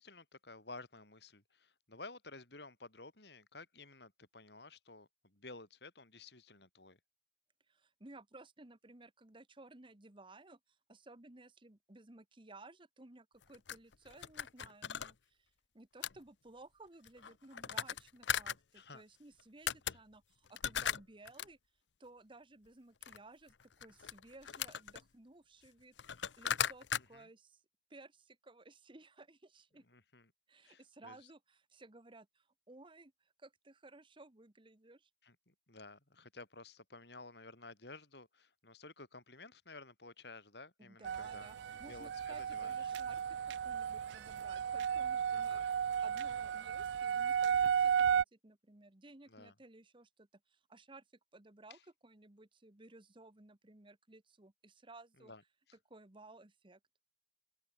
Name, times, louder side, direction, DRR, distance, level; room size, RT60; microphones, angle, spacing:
voice 1, 0.0-7.0 18.7-19.0 19.8-20.0 27.1-27.3 29.9-30.3 30.6-31.2 35.2-41.5 41.9-42.9 45.3-45.7 49.3-49.5 51.7-51.8 55.2-55.4, left 3 dB, 65° left, 5.1 m, -53 dB
voice 2, 7.7-21.6 22.0-27.6 27.9-29.8 30.5-35.1 40.8-45.6 46.0-51.0 51.3-55.3 55.9-56.8, right 2 dB, 30° right, 1.3 m, -58 dB
sound 1, 13.4-15.1 16.0-16.2 17.0-18.5 19.4-19.5 19.7-20.0 20.5-21.5 23.0-23.2 23.6-25.0 25.6-25.7 26.0-27.0, left 9 dB, 85° left, 0.8 m, -38 dB
sound 2, 41.0-48.2, right 8 dB, 75° right, 0.3 m, -34 dB
open air
head